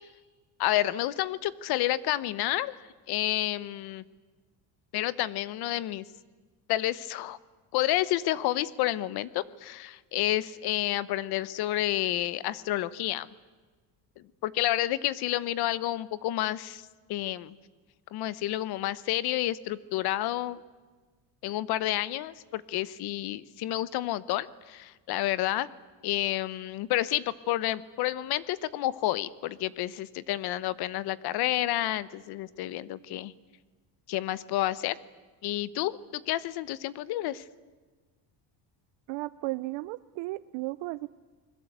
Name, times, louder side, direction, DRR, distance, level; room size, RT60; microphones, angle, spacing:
voice 1, 0.6-4.0 4.9-6.0 6.7-7.4 7.7-13.3 14.2-16.8 17.1-17.6 18.1-20.6 21.4-25.7 26.0-33.3 34.1-34.9 35.4-37.4, left 15 dB, 60° left, 18 dB, 1.0 m, -30 dB
voice 2, 39.1-41.1, right 20 dB, 90° right, 14 dB, 0.7 m, -34 dB
28.0 x 21.0 x 8.1 m, 1.3 s
cardioid pair, 175°, 43 cm